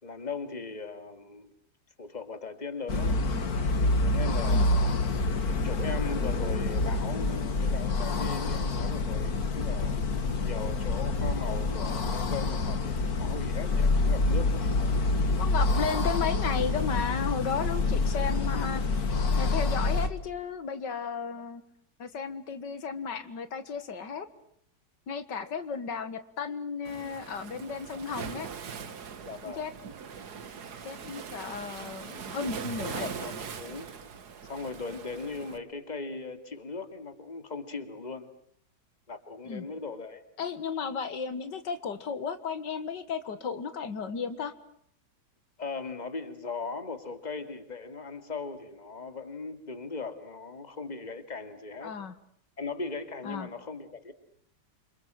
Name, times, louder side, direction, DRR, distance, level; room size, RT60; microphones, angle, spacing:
voice 1, 0.0-1.5 2.0-3.2 4.0-4.9 5.6-10.0 10.4-15.1 15.9-16.1 29.2-29.7 32.8-33.9 34.4-38.3 39.1-40.2 45.6-51.9 52.6-54.1, left 4 dB, 25° left, 9 dB, 2.3 m, -39 dB
sound 1, 2.9-20.1, left 3 dB, 60° left, 2.3 m, -27 dB
voice 2, 15.4-18.8 19.4-21.6 22.0-24.3 25.1-28.5 29.4-29.7 30.8-33.0 39.5-39.7 40.4-44.5 51.8-52.1 53.3-53.5, left 6 dB, 80° left, 12 dB, 2.3 m, -34 dB
Waves surf, 26.8-35.6, right 6 dB, 65° right, 2.0 m, -41 dB
28.5 x 26.5 x 7.6 m, 0.66 s
omnidirectional pair, 1.9 m